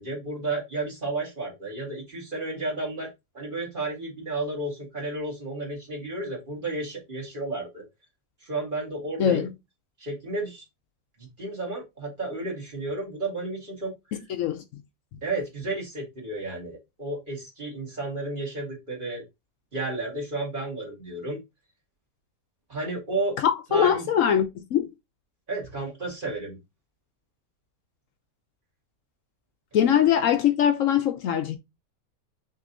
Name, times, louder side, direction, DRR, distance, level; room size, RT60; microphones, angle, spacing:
voice 1, 0.0-3.1 3.3-7.8 8.4-9.4 10.0-10.6 11.4-13.9 15.2-19.2 19.7-21.4 22.7-23.4 23.7-24.0 25.5-26.6, right 2 dB, 35° right, 2.2 m, -32 dB
voice 2, 9.2-9.5 14.1-14.8 23.4-24.9 29.7-31.6, left 9 dB, 70° left, 0.9 m, -22 dB
6.1 x 2.9 x 2.6 m
omnidirectional pair, 1.5 m